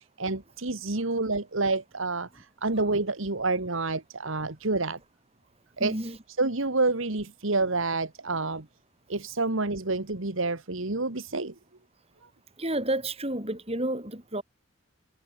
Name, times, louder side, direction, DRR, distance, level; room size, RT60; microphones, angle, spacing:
voice 1, 0.2-5.0 5.8-5.9 6.4-8.7 9.1-11.5, right 3 dB, 70° right, 1.8 m, -28 dB
voice 2, 5.8-6.2 12.6-14.4, right 1 dB, 30° right, 6.6 m, -31 dB
head